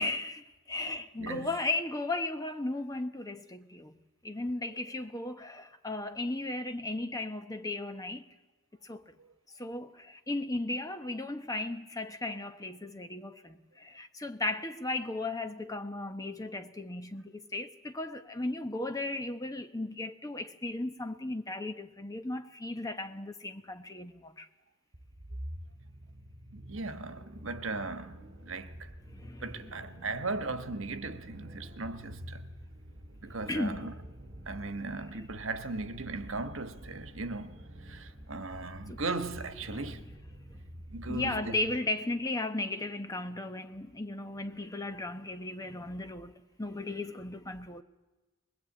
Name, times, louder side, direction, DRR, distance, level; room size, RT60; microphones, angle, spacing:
voice 1, 0.0-4.0 4.2-8.3 8.8-9.0 9.6-24.5 29.1-29.6 33.5-34.0 38.9-39.0 39.7-40.0 40.5-40.6 41.1-47.8, left 2 dB, 15° left, 0.9 m, -36 dB
voice 2, 1.2-1.5 26.5-28.9 29.4-32.4 33.2-33.9 34.5-40.1 40.9-41.6, right 3 dB, 70° right, 1.4 m, -38 dB
sound 1, 24.9-41.8, equal, 50° right, 2.2 m, -48 dB
23.5 x 21.0 x 8.7 m
head